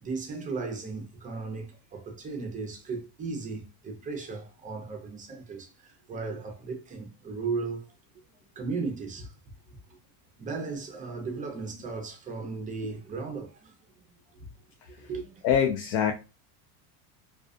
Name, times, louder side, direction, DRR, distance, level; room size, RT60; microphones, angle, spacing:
voice 1, 0.0-7.8 8.6-9.3 10.4-13.7 15.0-15.4, right 4 dB, 20° right, 0.4 m, -36 dB
voice 2, 15.4-16.1, left 8 dB, 70° left, 0.6 m, -25 dB
2.4 x 2.3 x 2.4 m
supercardioid pair, 135°, 45 cm